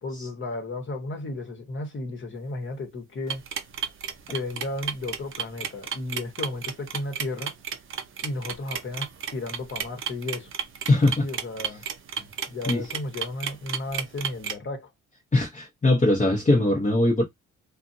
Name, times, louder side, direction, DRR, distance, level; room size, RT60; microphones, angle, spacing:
voice 1, 0.0-3.4 4.3-7.5 8.2-10.5 11.2-11.8 12.5-14.9, left 2 dB, 40° left, 1.2 m, -34 dB
sound 1, 3.3-14.5, right 7 dB, 45° right, 0.6 m, -32 dB
voice 2, 10.9-11.2 12.7-12.8 15.3-17.2, left 2 dB, 25° left, 1.0 m, -21 dB
2.6 x 2.5 x 2.6 m
cardioid pair, 90°, 30 cm